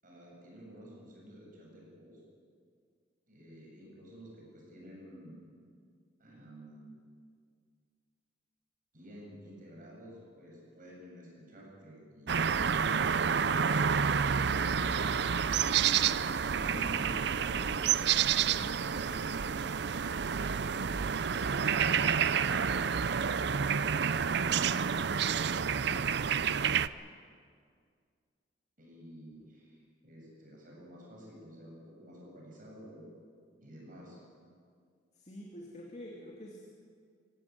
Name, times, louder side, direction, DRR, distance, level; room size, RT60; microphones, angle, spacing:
voice 1, 0.0-2.2 3.3-5.4 6.2-7.0 8.9-14.6 15.6-19.9 28.8-33.1 33.6-34.2, equal, 45° right, -2 dB, 7.5 m, -50 dB
sound 1, 12.3-26.9, right 7 dB, 60° right, 0.5 m, -29 dB
voice 2, 35.2-36.6, equal, 35° left, -1 dB, 2.6 m, -46 dB
23.5 x 16.5 x 9.7 m, 2.1 s
head